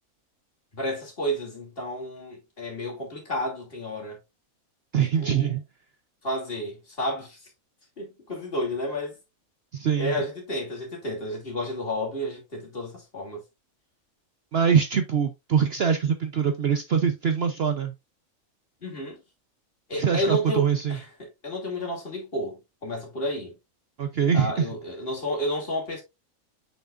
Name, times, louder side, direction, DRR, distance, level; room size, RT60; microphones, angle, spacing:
voice 1, 0.7-4.2 5.2-5.5 6.2-7.4 8.0-9.1 10.0-13.4 18.8-19.2 19.9-23.5 24.3-26.0, equal, 40° left, 2.9 m, -31 dB
voice 2, 4.9-5.6 9.7-10.1 14.5-17.9 20.0-21.0 24.0-24.6, right 7 dB, 55° right, 0.8 m, -23 dB
6.9 x 6.0 x 2.5 m
omnidirectional pair, 1.5 m